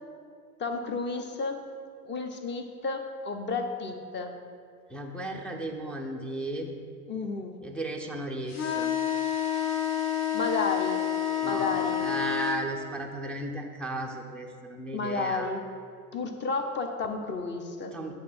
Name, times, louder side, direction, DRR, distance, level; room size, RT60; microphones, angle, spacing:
voice 1, 0.6-1.6 2.0-4.3 7.1-7.6 10.3-11.1 11.4-12.1 14.9-15.6 16.1-17.9, left 3 dB, 25° left, 5 dB, 0.8 m, -32 dB
voice 2, 4.9-6.7 7.6-8.9 11.4-15.5 17.9-18.2, right 1 dB, 5° left, 0 dB, 0.3 m, -35 dB
sound 1, 8.5-12.6, left 10 dB, 60° left, 1.3 m, -29 dB
8.4 x 3.5 x 6.2 m, 2.2 s
hypercardioid pair, 90°, 47 cm